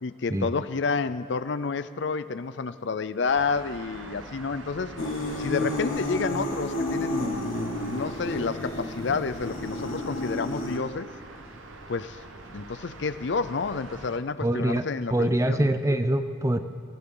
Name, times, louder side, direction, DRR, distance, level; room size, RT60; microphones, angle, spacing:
voice 1, 0.0-4.9 5.4-7.5 7.8-11.1 11.9-15.7, left 4 dB, 65° left, 14 dB, 0.5 m, -30 dB
sound 1, 3.2-14.2, right 2 dB, 85° right, 1.1 m, -44 dB
sound 2, 5.0-10.8, left 1 dB, 85° left, 1.7 m, -31 dB
voice 2, 14.4-14.9 15.1-16.6, right 1 dB, 15° right, 10 dB, 0.5 m, -24 dB
19.5 x 17.0 x 3.8 m, 2.1 s
head